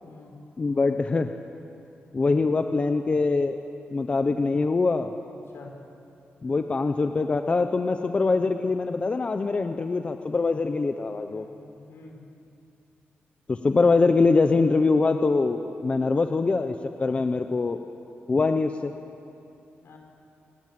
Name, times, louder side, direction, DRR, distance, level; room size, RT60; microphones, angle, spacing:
voice 1, 0.6-1.3 2.1-3.6 3.9-5.2 6.4-11.5 13.5-17.8 18.3-18.9, left 3 dB, 30° left, 7 dB, 0.8 m, -23 dB
voice 2, 11.3-12.2 19.8-20.0, left 3 dB, 75° left, 2 dB, 5.2 m, -48 dB
28.0 x 20.5 x 7.7 m, 2.7 s
wide cardioid pair, 160°, 4 cm